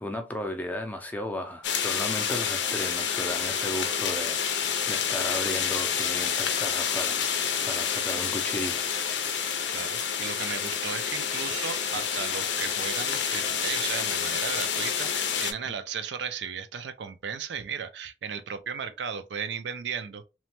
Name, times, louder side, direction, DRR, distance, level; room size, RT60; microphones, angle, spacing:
voice 1, 0.0-7.3 7.6-9.1 15.7-15.8, left 1 dB, 10° left, 0.4 m, -35 dB
sound 1, 1.6-15.5, left 7 dB, 85° left, 0.5 m, -28 dB
voice 2, 9.7-20.2, right 7 dB, 80° right, 0.4 m, -35 dB
3.0 x 2.1 x 2.9 m
head